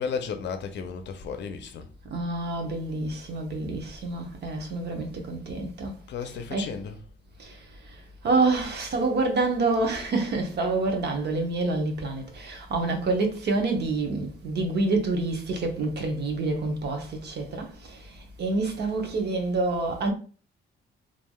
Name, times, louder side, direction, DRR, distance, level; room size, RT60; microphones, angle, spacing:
voice 1, 0.0-1.9 6.1-7.0, left 6 dB, 65° left, 0.5 m, -33 dB
voice 2, 2.1-6.8 7.4-20.1, right 3 dB, 60° right, 0.8 m, -28 dB
3.2 x 2.5 x 2.2 m
cardioid pair, 90°, 20 cm